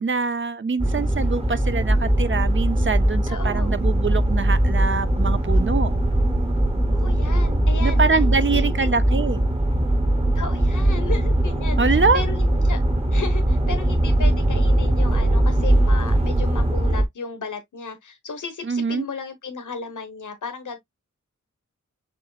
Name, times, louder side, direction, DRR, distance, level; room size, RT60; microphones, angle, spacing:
voice 1, 0.0-5.9 7.8-9.4 11.8-12.2 18.7-19.0, right 4 dB, 40° right, 0.5 m, -24 dB
sound 1, 0.8-17.0, right 1 dB, 20° right, 0.9 m, -20 dB
voice 2, 3.3-3.7 6.9-8.2 8.5-8.9 10.3-12.8 13.1-20.8, left 5 dB, 80° left, 1.1 m, -34 dB
6.9 x 3.0 x 2.3 m
wide cardioid pair, 100°, 30 cm